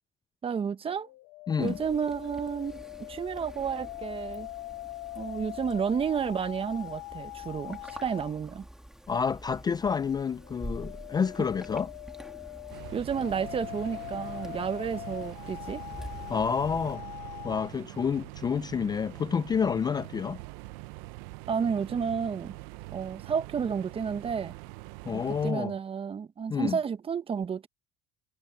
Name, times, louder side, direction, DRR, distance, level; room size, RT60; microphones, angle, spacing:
voice 1, 0.4-1.1 1.6-2.8 3.1-4.5 5.1-8.7 12.9-15.8 21.5-22.6 22.9-24.5 25.1-27.7, right 7 dB, 30° right, 1.1 m, -31 dB
sound 1, 1.0-8.4 10.4-17.7, left 20 dB, 75° left, 1.1 m, -42 dB
voice 2, 1.5-1.8 9.1-11.9 16.3-17.0 17.4-20.4 25.1-25.7 26.5-26.8, left 6 dB, 20° left, 0.4 m, -29 dB
sound 2, 1.6-17.0, right 1 dB, 5° right, 2.2 m, -47 dB
sound 3, 12.7-25.5, right 22 dB, 85° right, 0.7 m, -44 dB
cardioid pair, 110°, 19 cm